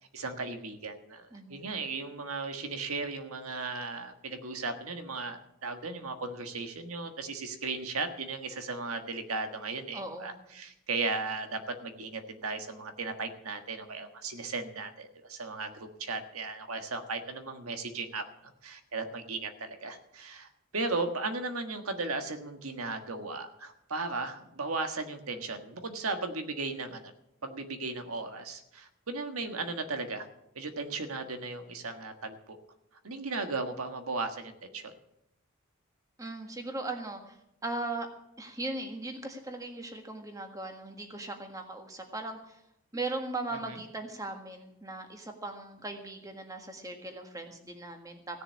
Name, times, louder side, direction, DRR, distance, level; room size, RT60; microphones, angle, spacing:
voice 1, 0.1-18.2 18.6-27.1 27.4-30.3 30.5-32.6 33.0-34.9 43.7-43.8, right 3 dB, 90° right, 7 dB, 1.5 m, -36 dB
voice 2, 1.3-1.7 9.9-10.3 36.2-37.4 37.6-38.1 38.4-42.6 42.9-48.4, right 2 dB, 15° right, 4 dB, 1.6 m, -38 dB
16.0 x 7.0 x 8.4 m, 0.83 s
head